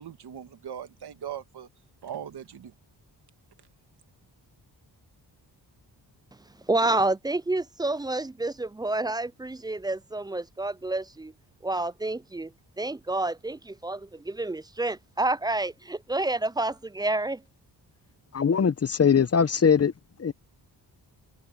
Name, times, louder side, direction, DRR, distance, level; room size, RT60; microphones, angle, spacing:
voice 1, 0.0-1.7 2.0-2.7, right 9 dB, 70° right, 1.7 m, -39 dB
voice 2, 6.7-11.3 11.6-17.4, right 2 dB, 10° right, 0.3 m, -29 dB
voice 3, 18.3-19.9 20.2-20.3, left 6 dB, 35° left, 0.9 m, -21 dB
open air
cardioid pair, 85°, 41 cm